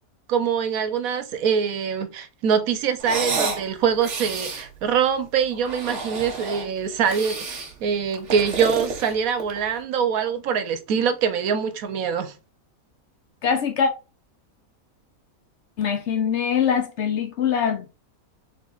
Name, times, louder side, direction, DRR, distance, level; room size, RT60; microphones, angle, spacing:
voice 1, 0.3-12.3, right 7 dB, 75° right, 1.1 m, -24 dB
sound 1, 3.0-3.6 4.0-4.7 5.5-6.7 7.1-7.7 8.1-9.7, right 3 dB, 55° right, 1.5 m, -29 dB
voice 2, 13.4-13.9 15.8-17.9, left 7 dB, 60° left, 0.8 m, -23 dB
3.7 x 3.7 x 3.8 m
omnidirectional pair, 1.5 m